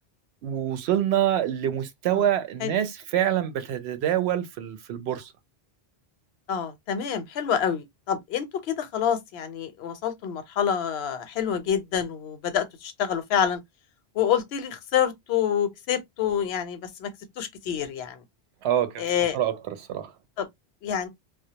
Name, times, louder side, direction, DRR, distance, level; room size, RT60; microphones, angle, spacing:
voice 1, 0.4-5.3 18.6-20.1, right 11 dB, 85° right, 0.8 m, -26 dB
voice 2, 6.5-13.6 14.2-17.1 17.4-18.2 19.0-19.4 20.4-20.5 20.8-21.1, left 8 dB, 80° left, 0.8 m, -27 dB
2.2 x 2.0 x 2.7 m
omnidirectional pair, 1.1 m